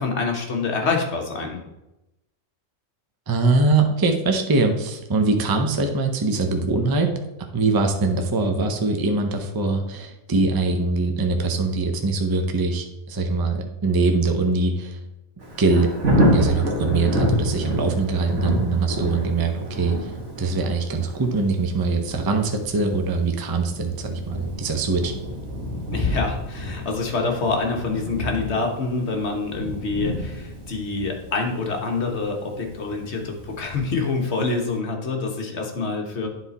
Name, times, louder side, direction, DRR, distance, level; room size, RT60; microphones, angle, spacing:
voice 1, 0.0-1.6 25.9-36.3, left 4 dB, 55° left, 2 dB, 1.3 m, -26 dB
voice 2, 3.3-7.1 7.5-15.0 15.6-15.9 16.3-25.2, right 3 dB, 25° right, 5 dB, 0.5 m, -22 dB
Thunder, 15.4-34.2 34.6-34.7, equal, 60° right, 1.9 m, -28 dB
9.7 x 4.1 x 4.1 m, 0.93 s
omnidirectional pair, 1.4 m